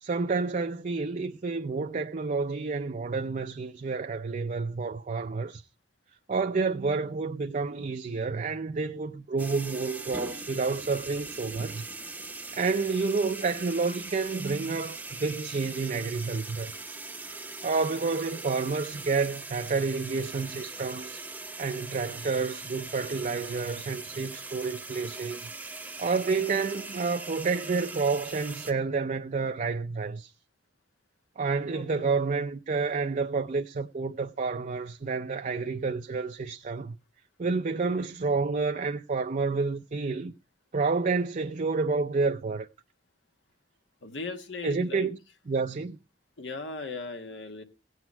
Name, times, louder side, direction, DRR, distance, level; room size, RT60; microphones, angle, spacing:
voice 1, 0.0-5.7 6.3-11.9 12.5-16.7 17.6-21.3 21.6-25.5 26.0-30.3 31.4-37.0 37.4-40.3 40.7-42.7 44.6-45.2 45.5-46.0, right 4 dB, 45° right, 0.5 m, -29 dB
sound 1, 9.4-28.7, right 3 dB, 10° right, 0.7 m, -41 dB
voice 2, 31.7-32.1 44.0-45.1 46.4-47.6, left 3 dB, 80° left, 1.5 m, -38 dB
17.0 x 8.1 x 4.4 m
head